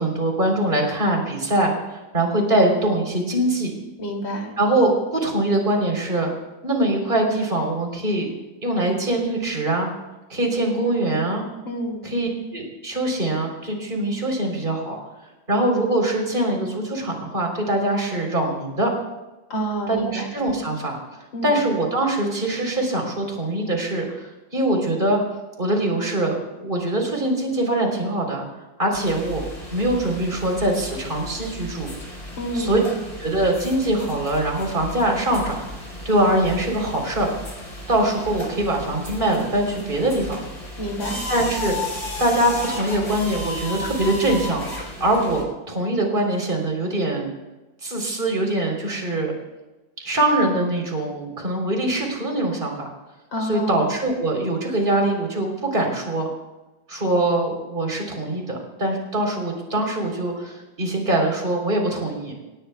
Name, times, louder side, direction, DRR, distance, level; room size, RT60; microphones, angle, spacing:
voice 1, 0.0-1.7 2.1-3.7 4.6-6.3 6.6-8.3 8.6-9.9 10.3-11.4 12.0-15.0 15.5-18.9 19.9-21.0 21.4-25.2 25.6-28.4 28.8-29.4 29.7-31.9 32.5-32.8 33.2-35.7 36.0-37.3 37.9-40.4 41.3-41.8 42.2-44.6 45.0-47.3 47.8-49.3 50.0-52.9 53.5-56.3 56.9-62.3, right 1 dB, 25° right, 1 dB, 4.0 m, -23 dB
voice 2, 4.0-4.5 11.7-12.0 19.5-20.3 21.3-21.6 32.4-33.0 40.8-41.2 53.3-53.9, right 1 dB, 85° left, 0 dB, 3.6 m, -28 dB
sound 1, 28.9-45.4, left 1 dB, 20° left, 4.3 m, -34 dB
29.0 x 18.0 x 2.4 m, 1.1 s
omnidirectional pair, 2.0 m